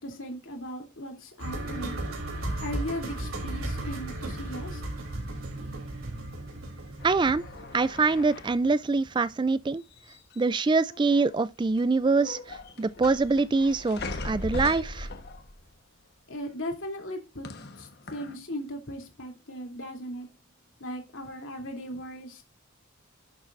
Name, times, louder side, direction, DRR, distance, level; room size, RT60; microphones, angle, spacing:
voice 1, 0.0-2.0 2.6-4.8 16.3-17.5 17.8-20.3 20.8-22.4, equal, 70° left, 2.8 m, -37 dB
sound 1, 1.4-9.4 9.6-9.7, right 1 dB, 80° right, 3.1 m, -36 dB
sound 2, 7.0-8.7 9.9-10.5 10.8-11.4 11.8-15.7 17.4-18.4, left 2 dB, 50° left, 1.1 m, -39 dB
voice 2, 7.0-7.4 7.7-9.8 10.4-15.1, right 3 dB, 20° right, 0.3 m, -24 dB
11.0 x 7.2 x 2.5 m
head